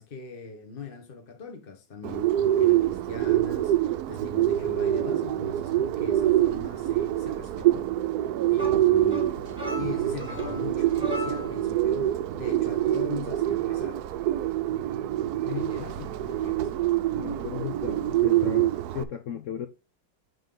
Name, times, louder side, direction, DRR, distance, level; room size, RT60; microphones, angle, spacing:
voice 1, 0.0-7.9 8.2-9.4 9.8-14.0 15.4-16.7, left 4 dB, 35° left, 1.1 m, -41 dB
Bird, 2.0-19.0, right 13 dB, 70° right, 1.0 m, -25 dB
sound 1, 8.5-11.7, left 2 dB, 5° right, 2.1 m, -37 dB
voice 2, 15.4-15.7 17.1-19.7, left 10 dB, 80° left, 0.7 m, -35 dB
9.1 x 3.6 x 3.7 m
omnidirectional pair, 1.9 m